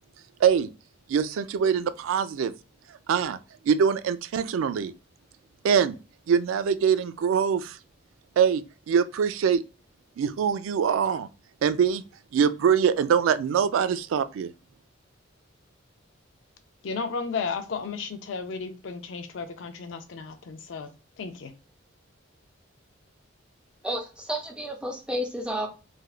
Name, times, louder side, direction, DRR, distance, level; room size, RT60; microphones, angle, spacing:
voice 1, 1.1-2.5 3.1-3.4 3.7-4.9 5.6-6.0 6.3-7.8 8.4-9.6 10.2-11.3 11.6-12.0 12.3-14.5, right 7 dB, 85° right, 0.3 m, -23 dB
voice 2, 16.8-20.9 21.2-21.5, left 5 dB, 65° left, 0.4 m, -33 dB
voice 3, 23.8-25.7, equal, 5° right, 0.5 m, -31 dB
3.3 x 2.3 x 2.3 m
head